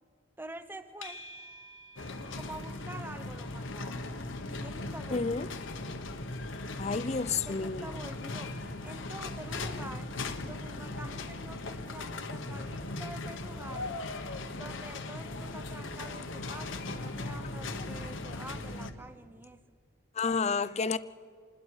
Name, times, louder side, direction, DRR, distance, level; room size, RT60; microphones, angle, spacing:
voice 1, 0.4-1.2 2.3-4.1 4.6-5.5 7.4-8.5 8.8-10.1 10.4-14.0 14.5-19.6, right 1 dB, 10° right, 0.8 m, -47 dB
sound 1, 1.0-18.2, left 1 dB, 80° left, 1.9 m, -57 dB
sound 2, 2.0-18.9, left 2 dB, 65° left, 1.3 m, -38 dB
voice 2, 5.1-5.5 6.8-8.0 20.1-21.0, left 4 dB, 30° left, 0.5 m, -30 dB
27.0 x 20.5 x 4.8 m
head